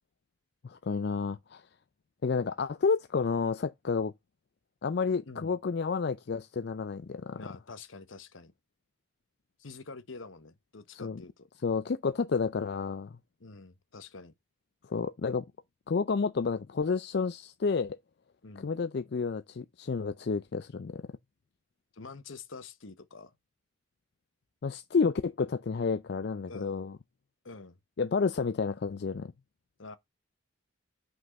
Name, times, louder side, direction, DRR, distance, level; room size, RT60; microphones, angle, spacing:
voice 1, 0.6-1.6 2.2-4.1 4.8-7.4 11.0-11.2 11.6-13.2 14.9-15.5 15.9-18.0 18.6-21.0 24.6-27.0 28.0-29.3, left 5 dB, 55° left, 0.4 m, -30 dB
voice 2, 5.3-5.6 7.3-8.5 9.6-11.5 13.4-14.3 18.4-18.7 21.9-23.3 26.5-26.9 27.4-27.8 29.8-30.0, left 3 dB, 75° left, 1.1 m, -46 dB
6.2 x 5.5 x 5.1 m
head